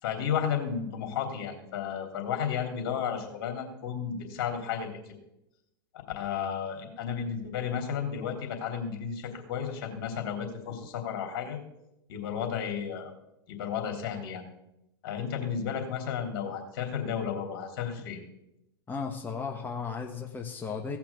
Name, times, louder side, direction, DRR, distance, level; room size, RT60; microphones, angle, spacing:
voice 1, 0.0-5.0 6.1-11.6 12.1-13.1 13.5-14.4 15.0-18.2, left 7 dB, 60° left, 3 dB, 3.2 m, -33 dB
voice 2, 18.9-21.0, left 5 dB, 15° left, 2 dB, 1.2 m, -35 dB
17.0 x 5.9 x 6.9 m, 0.87 s
hypercardioid pair, 105°, 13 cm